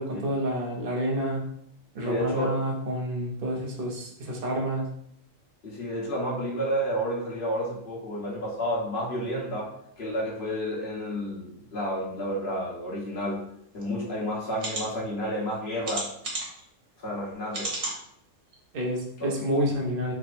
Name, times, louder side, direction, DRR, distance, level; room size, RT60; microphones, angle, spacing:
voice 1, 0.0-1.4 1.9-4.9 18.7-20.1, equal, 50° right, -1 dB, 0.9 m, -29 dB
voice 2, 2.0-2.5 5.6-9.7 10.0-13.5 13.7-16.1 17.0-17.8 19.2-19.3, equal, 45° left, -7 dB, 1.4 m, -30 dB
sound 1, 13.8-13.9 14.5-14.8 15.8-16.6 17.5-18.0 18.5-18.6 19.0-19.1, right 2 dB, 75° right, 1.5 m, -32 dB
3.5 x 2.2 x 4.1 m, 0.71 s
omnidirectional pair, 1.4 m